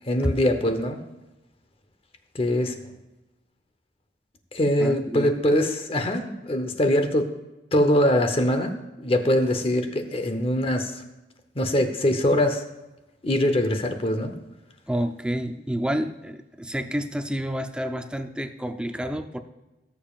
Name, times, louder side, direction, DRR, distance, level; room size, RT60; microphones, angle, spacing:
voice 1, 0.1-1.0 2.3-2.7 4.5-7.3 7.7-11.0 11.6-12.6 13.2-14.3, left 1 dB, 30° left, 7 dB, 0.9 m, -23 dB
voice 2, 4.8-5.3 14.9-19.4, equal, 5° right, 7 dB, 0.5 m, -29 dB
18.0 x 7.1 x 2.4 m, 1.0 s
head